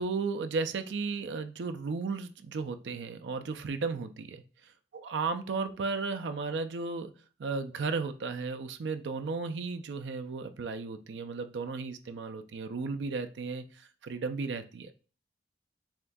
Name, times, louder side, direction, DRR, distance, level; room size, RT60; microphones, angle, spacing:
voice 1, 0.0-4.4 5.0-7.1 7.4-14.9, right 4 dB, 85° right, 8 dB, 0.4 m, -34 dB
7.1 x 2.6 x 2.3 m, 0.37 s
head